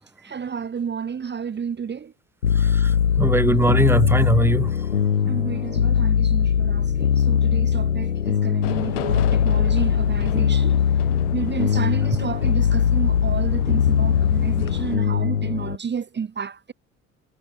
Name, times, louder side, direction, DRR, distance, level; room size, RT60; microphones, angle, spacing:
voice 1, 0.2-2.1 5.3-10.8 11.3-16.7, right 6 dB, 25° right, 1.8 m, -31 dB
sound 1, 2.4-15.8, left 8 dB, 85° left, 1.2 m, -21 dB
voice 2, 2.6-4.8, right 1 dB, 5° right, 2.2 m, -21 dB
sound 2, 8.6-15.0, left 32 dB, 65° left, 2.8 m, -31 dB
figure-of-eight pair, 55°, 39 cm